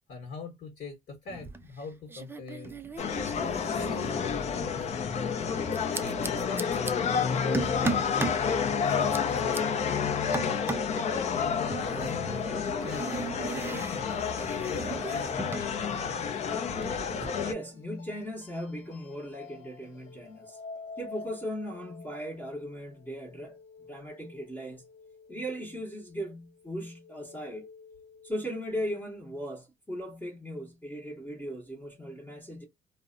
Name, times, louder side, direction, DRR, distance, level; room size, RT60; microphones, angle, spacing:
voice 1, 0.1-2.8 3.1-4.9 5.9-8.1 9.2-10.4 10.9-16.5, left 4 dB, 55° left, 1.0 m, -42 dB
sound 1, 1.3-1.8 2.1-4.7 5.7-6.9 7.5-8.4 8.9-9.6 10.3-11.0 11.7-15.7 16.0-17.3, right 4 dB, 15° right, 0.4 m, -37 dB
sound 2, 3.0-17.5, left 6 dB, 40° left, 0.5 m, -30 dB
sound 3, 13.9-28.3, left 4 dB, 80° left, 0.7 m, -50 dB
voice 2, 17.4-20.6 21.0-23.6 23.9-24.8 25.3-27.7 28.2-32.6, equal, 10° left, 0.8 m, -38 dB
2.5 x 2.1 x 2.4 m
cardioid pair, 110°, 17 cm